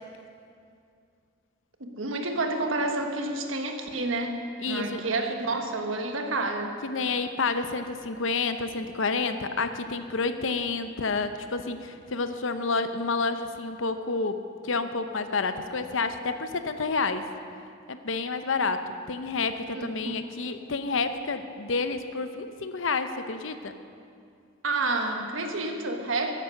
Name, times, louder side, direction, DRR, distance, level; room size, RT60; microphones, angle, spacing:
voice 1, 1.8-6.7 19.7-20.1 24.6-26.3, right 2 dB, 80° right, 4 dB, 1.4 m, -29 dB
voice 2, 4.6-5.0 6.8-17.2 17.9-23.7, left 4 dB, 75° left, 9 dB, 0.8 m, -29 dB
13.5 x 10.5 x 6.5 m, 2.4 s
head